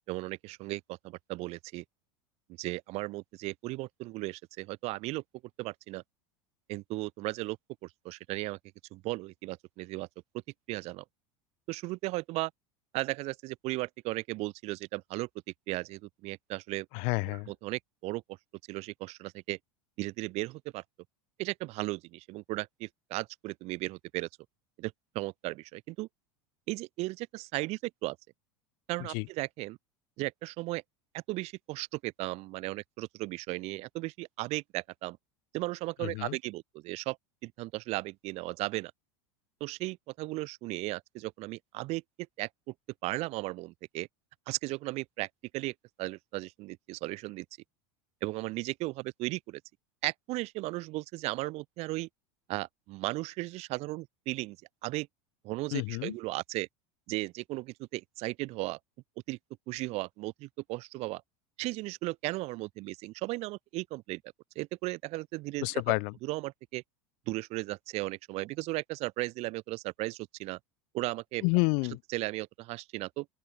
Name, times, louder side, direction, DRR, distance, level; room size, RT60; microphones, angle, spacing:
voice 1, 0.1-1.8 2.6-5.2 5.6-6.0 6.7-7.6 7.8-8.6 8.9-10.1 10.7-11.0 11.7-12.5 12.9-15.3 15.7-16.9 17.3-18.2 18.7-19.6 20.0-20.8 21.4-24.3 24.8-26.1 26.7-28.2 28.9-29.8 30.2-30.8 31.1-35.2 35.5-37.2 37.4-38.9 39.6-42.0 42.4-42.7 43.0-44.1 44.5-45.3 45.5-47.5 48.2-49.6 50.0-52.1 52.5-54.6 54.8-55.1 55.4-56.7 57.1-58.8 59.3-59.4 59.7-61.2 61.6-64.2 64.6-65.8 66.2-66.8 67.3-70.6 70.9-71.4 72.1-73.3, right 21 dB, 50° right, 0.4 m, -36 dB
voice 2, 16.9-17.5 29.1-29.2 36.0-36.4 55.7-56.1 65.6-66.1 71.4-72.0, left 39 dB, 60° left, 0.4 m, -29 dB
open air
hypercardioid pair, 95°, 14 cm